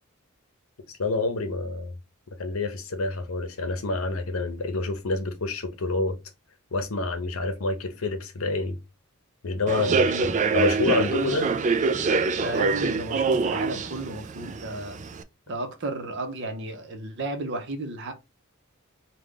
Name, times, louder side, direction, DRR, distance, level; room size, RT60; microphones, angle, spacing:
voice 1, 0.9-1.9 2.4-6.2 6.7-8.8 9.4-11.6, left 3 dB, 70° left, 0.8 m, -28 dB
Human voice / Subway metro underground, 9.7-15.2, right 4 dB, 35° right, 0.3 m, -25 dB
voice 2, 9.7-10.6 12.3-15.0 15.5-18.1, right 2 dB, 55° right, 0.8 m, -33 dB
3.4 x 2.3 x 3.7 m
head